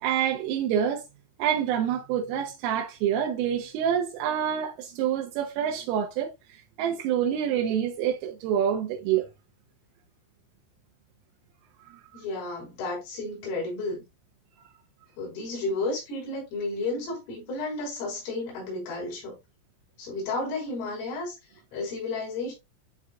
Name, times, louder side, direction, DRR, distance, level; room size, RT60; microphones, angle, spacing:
voice 1, 0.0-1.0 1.4-6.3 6.8-9.3, right 9 dB, 80° right, 3.4 m, -27 dB
voice 2, 12.1-14.0 15.2-19.4 20.0-21.4 21.7-22.5, left 3 dB, 85° left, 7.1 m, -32 dB
12.0 x 4.0 x 2.3 m
omnidirectional pair, 5.8 m